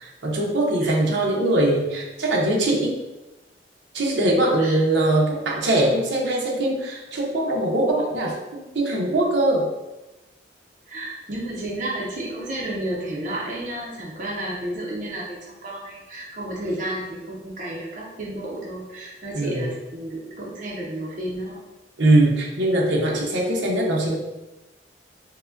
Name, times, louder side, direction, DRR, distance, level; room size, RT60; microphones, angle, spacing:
voice 1, 0.0-3.0 3.9-9.7 19.3-19.7 22.0-24.2, right 1 dB, 80° right, -2 dB, 0.7 m, -21 dB
voice 2, 0.8-1.2 4.6-4.8 10.9-21.6, right 1 dB, 45° right, -4 dB, 0.5 m, -32 dB
4.5 x 2.1 x 2.5 m, 1.0 s
head